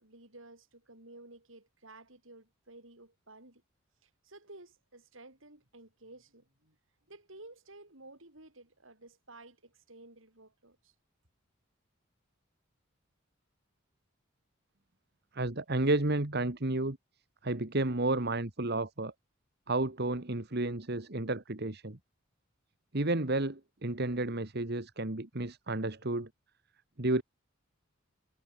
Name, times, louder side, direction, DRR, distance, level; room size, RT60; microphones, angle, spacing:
voice 1, 0.0-3.6 4.0-6.8 7.1-10.9, right 2 dB, 70° right, 6.8 m, -54 dB
voice 2, 15.3-17.0 17.4-19.1 19.7-22.0 22.9-26.3 27.0-27.2, right 2 dB, 50° right, 1.7 m, -31 dB
head